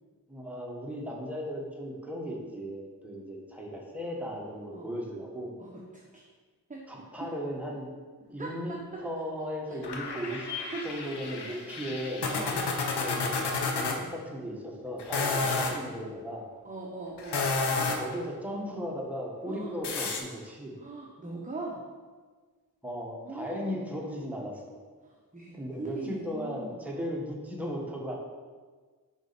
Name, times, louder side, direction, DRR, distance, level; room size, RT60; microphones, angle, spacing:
voice 1, 0.3-5.5 6.9-7.9 8.3-10.5 10.8-12.3 13.0-13.3 13.7-16.5 17.9-20.7 22.8-24.8 25.5-28.1, equal, 5° right, -2 dB, 1.2 m, -36 dB
voice 2, 5.6-6.2 6.7-7.3 8.4-9.0 9.7-9.8 10.5-10.9 11.5-11.6 12.3-12.7 16.6-17.6 19.5-19.7 20.8-21.8 23.3-23.8 25.0-26.9, right 3 dB, 20° right, -2 dB, 0.8 m, -41 dB
sound 1, 9.8-14.0 15.0-15.8 17.2-18.2 19.8-20.2, left 4 dB, 85° left, 0.8 m, -31 dB
5.2 x 4.8 x 4.1 m, 1.4 s
wide cardioid pair, 65°, 39 cm